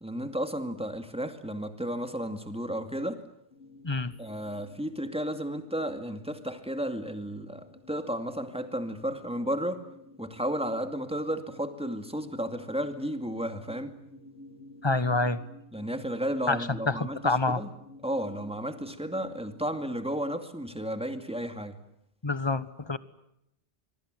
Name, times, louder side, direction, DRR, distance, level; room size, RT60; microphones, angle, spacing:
voice 1, 0.0-3.2 4.2-9.8 10.2-13.9 15.7-17.7 18.0-21.8, equal, 5° right, 7 dB, 2.3 m, -33 dB
sound 1, 3.5-20.1, left 2 dB, 70° left, 3.3 m, -52 dB
voice 2, 14.8-15.4 16.5-17.6 22.2-23.0, left 3 dB, 25° left, 14 dB, 1.2 m, -27 dB
26.5 x 23.0 x 9.4 m, 0.79 s
omnidirectional pair, 1.2 m